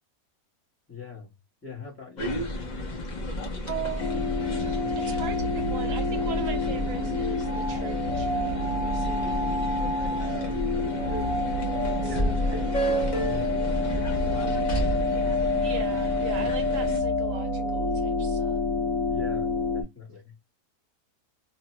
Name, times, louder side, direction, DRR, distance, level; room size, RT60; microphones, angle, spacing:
voice 1, 0.9-1.3 1.6-2.5 10.0-11.4 12.0-14.7 19.1-20.3, left 3 dB, 10° left, 0.7 m, -42 dB
sound 1, 2.2-17.0, equal, 45° left, 0.5 m, -32 dB
voice 2, 3.6-4.2 4.6-9.7 11.9-13.3 15.6-18.6, right 7 dB, 60° right, 1.1 m, -40 dB
sound 2, 4.0-19.8, left 2 dB, 65° left, 0.9 m, -28 dB
3.0 x 2.1 x 2.8 m
omnidirectional pair, 1.7 m